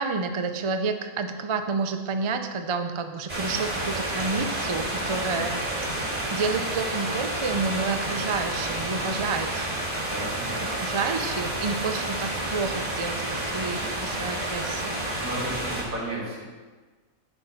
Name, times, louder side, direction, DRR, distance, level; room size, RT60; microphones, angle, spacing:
voice 1, 0.0-5.6 6.3-9.7 10.8-15.0, right 4 dB, 45° right, 7 dB, 0.4 m, -29 dB
sound 1, 3.3-15.8, right 1 dB, 30° right, 2.1 m, -30 dB
voice 2, 10.1-10.6 15.2-16.4, right 1 dB, 75° right, -4 dB, 2.9 m, -33 dB
8.1 x 8.0 x 5.6 m, 1.4 s
omnidirectional pair, 1.5 m